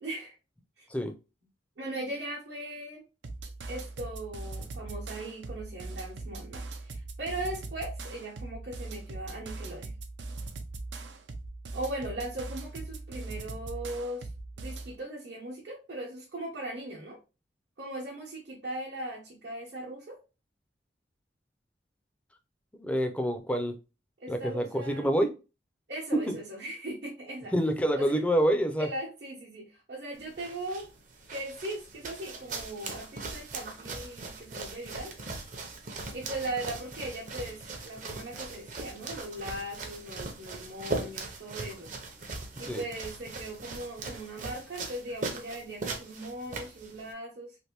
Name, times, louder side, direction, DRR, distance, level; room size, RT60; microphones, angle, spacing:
voice 1, 0.0-0.3 0.8-0.9 1.8-3.0 3.7-9.9 11.7-14.3 14.6-17.2 17.8-20.2 24.2-25.1 25.9-27.5 27.9-28.2 28.8-30.9 31.3-35.1 36.1-41.9 42.6-47.6, right 1 dB, 70° right, -4 dB, 0.9 m, -39 dB
sound 1, 3.2-14.9, right 2 dB, 90° right, 0.5 m, -40 dB
voice 2, 22.7-23.7 24.3-25.3 26.1-26.3 27.5-28.9 42.7-42.8, equal, 5° left, 6 dB, 0.4 m, -27 dB
sound 2, 30.1-47.1, right 3 dB, 45° right, 0.6 m, -40 dB
3.2 x 2.5 x 2.9 m, 0.30 s
head